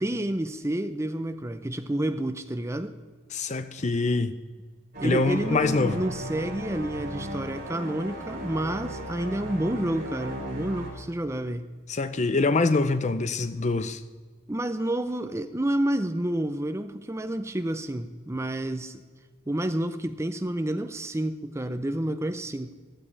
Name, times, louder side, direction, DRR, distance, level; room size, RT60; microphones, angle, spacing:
voice 1, 0.0-2.9 5.0-11.7 14.5-19.0 19.5-22.8, right 1 dB, 15° right, 0.5 m, -29 dB
voice 2, 3.3-4.3 5.0-6.0 11.9-14.0, left 3 dB, 35° left, 0.6 m, -24 dB
sound 1, 4.9-10.9, right 1 dB, 45° right, 4.9 m, -36 dB
15.5 x 14.5 x 3.3 m
head